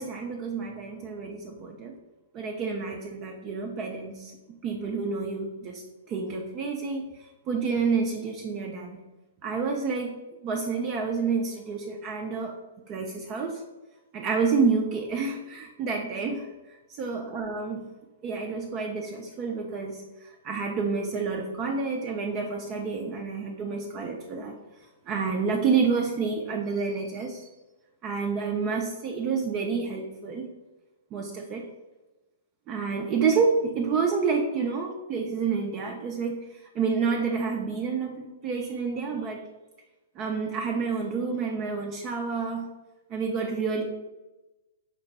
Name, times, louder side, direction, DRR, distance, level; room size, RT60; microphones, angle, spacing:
voice 1, 0.0-1.9 2.3-4.3 4.6-9.0 9.4-10.2 10.4-12.6 12.9-13.6 14.1-17.8 18.2-24.6 25.1-27.5 28.0-30.4 31.1-31.7 32.7-39.4 40.2-42.7 43.1-43.8, right 5 dB, 30° right, 1 dB, 0.5 m, -29 dB
5.0 x 2.1 x 4.0 m, 1.1 s
figure-of-eight pair, 115°, 0 cm